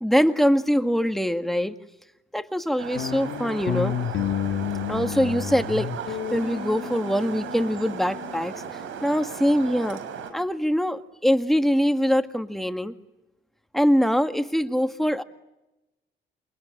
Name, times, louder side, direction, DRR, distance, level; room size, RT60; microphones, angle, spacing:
voice 1, 0.0-1.8 2.3-3.9 4.9-8.6 9.0-10.0 10.3-13.0 13.7-15.2, equal, ahead, 8 dB, 1.8 m, -23 dB
sound 1, 2.8-10.3, right 7 dB, 80° right, 5.3 m, -37 dB
sound 2, 2.9-8.4, left 9 dB, 75° left, 1.7 m, -31 dB
28.5 x 23.5 x 8.8 m, 0.98 s
cardioid pair, 90°, 20 cm